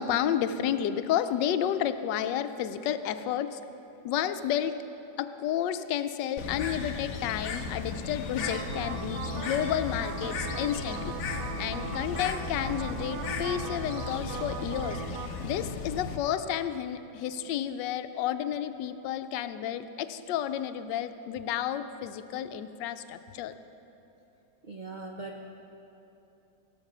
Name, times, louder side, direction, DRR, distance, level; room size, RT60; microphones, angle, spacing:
voice 1, 0.0-3.6 4.0-4.7 5.2-11.2 11.6-15.0 15.4-23.5, left 10 dB, 85° left, 11 dB, 1.2 m, -31 dB
Bird, 6.4-16.2, left 5 dB, 60° left, 1.1 m, -36 dB
sound 1, 8.4-15.3, right 6 dB, 70° right, 1.0 m, -39 dB
voice 2, 24.6-25.6, right 2 dB, 85° right, 1 dB, 0.4 m, -41 dB
18.5 x 6.5 x 6.0 m, 2.9 s
omnidirectional pair, 1.9 m